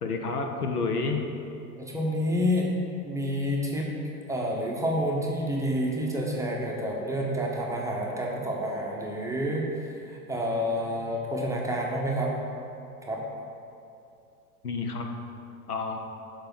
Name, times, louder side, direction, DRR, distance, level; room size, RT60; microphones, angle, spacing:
voice 1, 0.0-1.2 14.6-15.1 15.7-16.0, left 4 dB, 75° left, 3 dB, 0.9 m, -29 dB
voice 2, 1.8-3.9 4.3-9.7 10.1-12.3 13.0-13.2, equal, 5° right, -2 dB, 0.8 m, -29 dB
6.7 x 4.8 x 6.0 m, 2.6 s
figure-of-eight pair, 85°, 46 cm